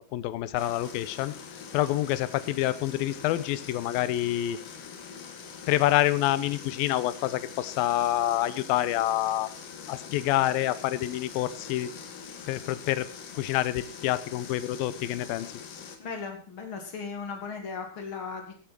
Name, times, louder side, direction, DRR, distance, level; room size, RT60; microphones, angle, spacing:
voice 1, 0.1-1.3 1.7-4.6 5.7-9.5 9.9-11.9 12.5-13.1 13.3-15.5, left 14 dB, 80° left, 16 dB, 2.5 m, -27 dB
sound 1, 0.5-16.0, left 6 dB, 65° left, 3.1 m, -44 dB
voice 2, 16.0-18.5, left 5 dB, 35° left, 4 dB, 3.1 m, -37 dB
15.5 x 8.6 x 6.1 m, 0.41 s
omnidirectional pair, 4.3 m